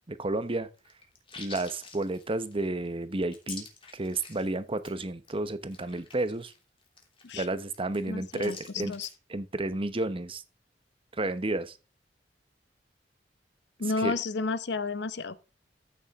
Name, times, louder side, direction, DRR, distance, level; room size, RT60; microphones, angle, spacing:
voice 1, 0.1-0.7 1.4-3.7 3.9-6.5 7.3-8.9 9.3-10.4 11.1-11.8 14.0-14.1, right 2 dB, 30° right, 1.0 m, -31 dB
sound 1, 0.8-4.5 4.8-4.9 5.3-5.4 5.6-9.2, left 5 dB, 30° left, 3.2 m, -47 dB
voice 2, 8.1-9.1 13.8-15.4, left 3 dB, 70° left, 0.9 m, -32 dB
14.5 x 7.2 x 3.6 m
head